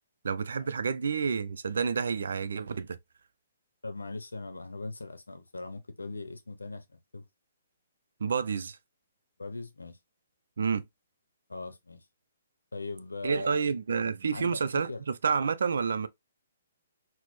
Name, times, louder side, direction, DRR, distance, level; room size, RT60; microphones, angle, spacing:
voice 1, 0.2-3.0 8.2-8.8 10.6-10.8 13.2-16.1, right 5 dB, 70° right, 0.4 m, -29 dB
voice 2, 3.8-6.8 7.1-7.2 9.4-10.0 11.5-12.0 12.7-13.7 14.3-15.0, left 2 dB, 85° left, 0.7 m, -39 dB
4.1 x 2.1 x 3.1 m
figure-of-eight pair, 130°, 0 cm